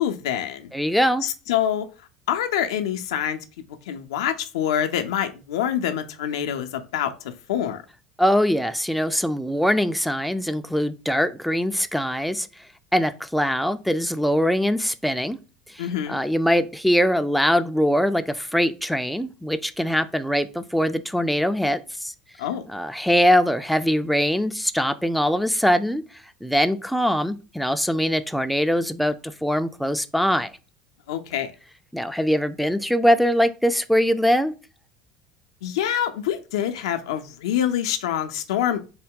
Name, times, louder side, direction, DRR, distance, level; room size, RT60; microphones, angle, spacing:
voice 1, 0.0-0.7 1.2-1.9 2.3-3.4 3.9-7.1 7.5-7.8 15.8-16.2 22.4-22.6 31.1-31.5 35.6-38.8, left 10 dB, 75° left, 0.4 m, -25 dB
voice 2, 0.7-1.2 8.2-12.5 12.9-15.4 15.7-22.1 22.7-30.5 31.9-34.5, equal, ahead, 0.3 m, -22 dB
3.7 x 2.2 x 3.6 m
hypercardioid pair, 75°, 3 cm